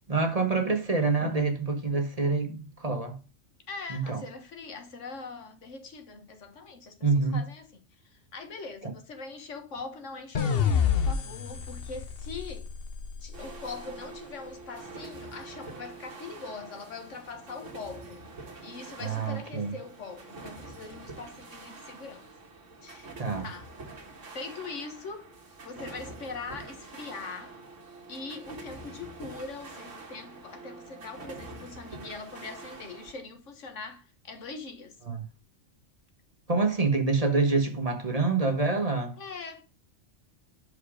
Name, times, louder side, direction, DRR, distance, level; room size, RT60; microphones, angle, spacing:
voice 1, 0.1-3.2 3.9-4.2 7.0-7.4 8.8-8.9 19.0-19.7 23.2-23.5 35.1-35.2 36.5-39.2, right 3 dB, 30° right, 1.3 m, -26 dB
voice 2, 3.7-7.7 8.0-12.7 13.2-18.2 18.6-22.3 22.8-23.7 24.3-25.3 25.6-27.6 28.1-34.9 39.2-39.6, left 4 dB, 80° left, 1.7 m, -42 dB
sound 1, 10.3-13.6, left 7 dB, 55° left, 1.0 m, -28 dB
sound 2, 13.3-33.1, right 3 dB, 90° right, 1.9 m, -46 dB
6.6 x 5.2 x 4.9 m
omnidirectional pair, 1.2 m